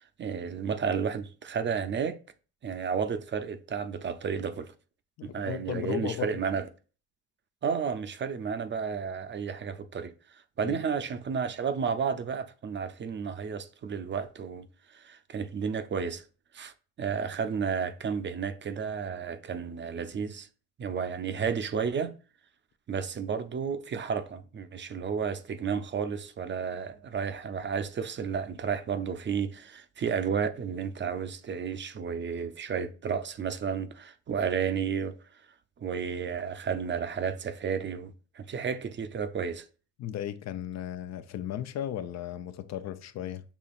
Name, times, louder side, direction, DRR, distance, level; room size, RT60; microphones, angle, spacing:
voice 1, 0.0-2.2 2.6-4.7 5.2-6.6 7.6-14.7 14.9-16.2 16.5-16.7 17.0-20.5 20.8-22.1 22.9-35.1 35.8-39.7, right 6 dB, 40° right, 0.5 m, -32 dB
voice 2, 5.2-6.3 10.6-10.8 40.0-43.4, left 11 dB, 60° left, 0.5 m, -35 dB
6.7 x 2.8 x 2.4 m
cardioid pair, 90°, 30 cm